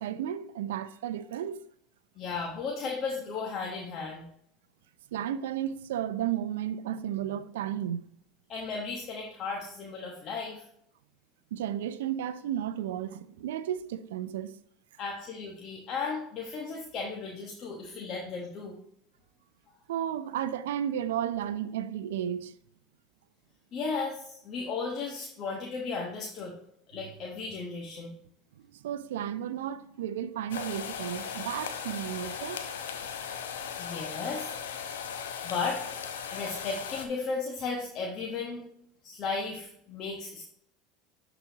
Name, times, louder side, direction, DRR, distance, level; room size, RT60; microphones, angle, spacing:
voice 1, 0.0-1.6 5.1-8.1 11.5-14.6 19.9-22.5 28.7-32.6, right 10 dB, 80° right, 0.4 m, -33 dB
voice 2, 2.2-4.3 8.5-10.6 15.0-18.8 23.7-26.5 26.9-28.1 33.8-34.5 35.4-35.8 36.3-38.6 39.0-40.4, left 4 dB, 50° left, 1.1 m, -35 dB
sound 1, 30.5-37.1, left 7 dB, 85° left, 0.7 m, -37 dB
11.5 x 3.9 x 2.8 m
hypercardioid pair, 80°, 0 cm